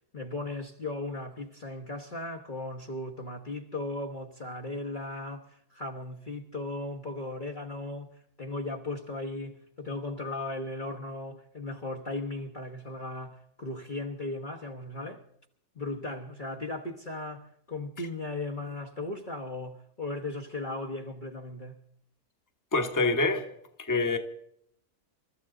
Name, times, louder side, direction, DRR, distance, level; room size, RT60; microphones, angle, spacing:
voice 1, 0.1-8.1 8.4-15.2 15.7-21.8, left 2 dB, 35° left, 1.2 m, -37 dB
voice 2, 22.7-23.4 23.8-24.2, left 3 dB, 15° left, 1.2 m, -25 dB
28.0 x 13.5 x 3.8 m
omnidirectional pair, 1.6 m